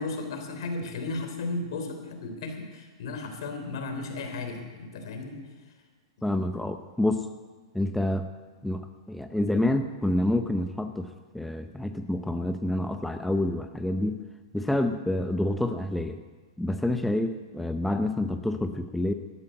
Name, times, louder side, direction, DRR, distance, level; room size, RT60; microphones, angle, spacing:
voice 1, 0.0-5.4, left 3 dB, 65° left, 5 dB, 3.3 m, -34 dB
voice 2, 6.2-7.3 7.7-8.3 8.6-11.1 11.3-14.2 14.5-16.2 16.6-19.1, left 1 dB, 5° left, 7 dB, 0.7 m, -28 dB
12.5 x 11.5 x 7.8 m, 1.4 s
hypercardioid pair, 120°, 3 cm